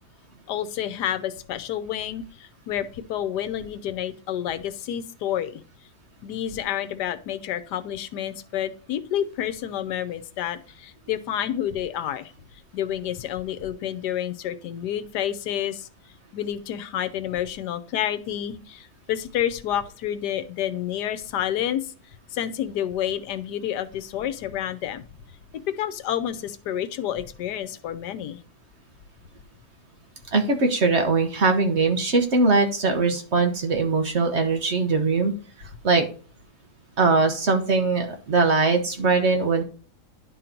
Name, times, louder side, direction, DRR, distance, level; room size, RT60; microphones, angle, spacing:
voice 1, 0.5-5.6 6.2-12.3 12.7-15.9 16.3-21.9 22.3-25.0 25.7-28.4, left 10 dB, 85° left, 13 dB, 1.3 m, -29 dB
voice 2, 30.3-35.3 35.6-36.1 37.0-39.6, right 3 dB, 45° right, 5 dB, 1.2 m, -21 dB
10.5 x 3.9 x 4.4 m, 0.39 s
omnidirectional pair, 1.7 m